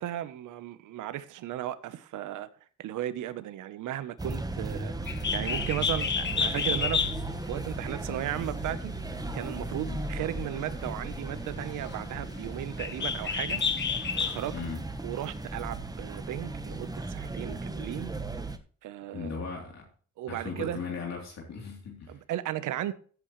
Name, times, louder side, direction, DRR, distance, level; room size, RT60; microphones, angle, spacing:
voice 1, 0.0-2.5 2.8-7.1 7.4-8.9 9.3-13.6 14.1-14.5 15.0-18.1 18.8-19.4 20.2-20.8 22.1-22.9, right 13 dB, 85° right, 1.0 m, -35 dB
sound 1, 4.2-18.6, right 2 dB, 10° right, 1.2 m, -36 dB
Bird, 5.0-14.6, left 6 dB, 35° left, 1.1 m, -32 dB
voice 2, 14.5-14.9 19.1-19.9 20.3-22.2, left 5 dB, 60° left, 3.4 m, -37 dB
15.5 x 8.0 x 3.2 m
cardioid pair, 90°, 30 cm